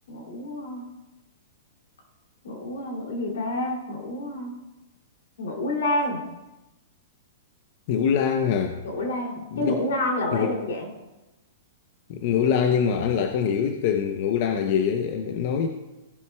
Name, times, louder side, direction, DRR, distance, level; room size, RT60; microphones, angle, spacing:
voice 1, 0.1-0.9 2.4-4.6 5.4-6.2 8.8-10.9, left 1 dB, 80° left, 1 dB, 2.7 m, -29 dB
voice 2, 7.9-8.8 9.5-9.8 10.3-10.5 12.1-15.7, left 7 dB, 45° left, 5 dB, 0.6 m, -24 dB
15.5 x 7.7 x 2.3 m, 1.0 s
hypercardioid pair, 160°, 0 cm